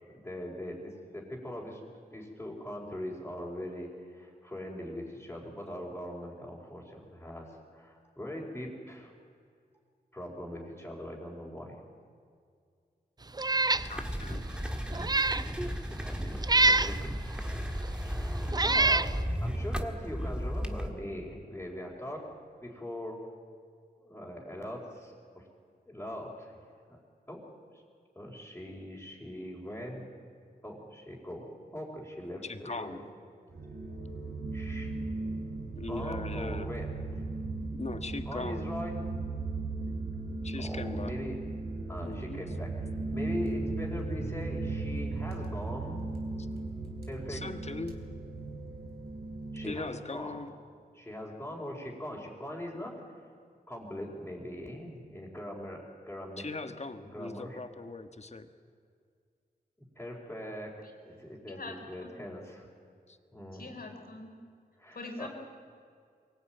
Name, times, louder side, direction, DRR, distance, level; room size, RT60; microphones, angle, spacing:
voice 1, 0.1-1.8 2.1-7.5 7.7-9.1 10.1-11.8 15.8-17.1 18.2-19.1 19.4-22.3 22.6-23.2 24.0-25.1 25.9-26.6 26.9-27.0 27.3-27.4 28.1-30.1 30.6-31.5 31.7-33.0 34.5-34.9 35.9-37.2 37.8-37.9 38.2-39.0 40.6-41.4 41.9-46.1 47.1-47.4 49.5-50.4 50.9-53.1 53.7-56.5 56.9-57.6 59.9-60.7 61.0-62.7 63.3-63.7 64.8-65.3, left 1 dB, 10° left, -6 dB, 4.7 m, -41 dB
Meow, 13.4-13.9 14.3-14.4 14.9-15.5 16.4-17.0 17.8-17.9 18.5-19.1, right 2 dB, 25° right, 0.6 m, -25 dB
sound 1, 13.7-20.9, equal, 5° right, 1.7 m, -34 dB
voice 2, 13.8-14.5 32.4-33.0 35.8-36.7 37.7-38.7 40.4-41.1 42.0-42.4 47.3-47.9 49.6-50.5 56.4-58.5 63.1-63.2, left 3 dB, 40° left, 9 dB, 1.5 m, -40 dB
sound 2, 33.5-49.7, right 3 dB, 85° right, 2.9 m, -36 dB
voice 3, 61.4-62.1 63.5-64.3 64.9-65.3, left 2 dB, 65° left, 4 dB, 3.9 m, -43 dB
23.0 x 17.5 x 9.1 m, 2.2 s
cardioid pair, 60°, 17 cm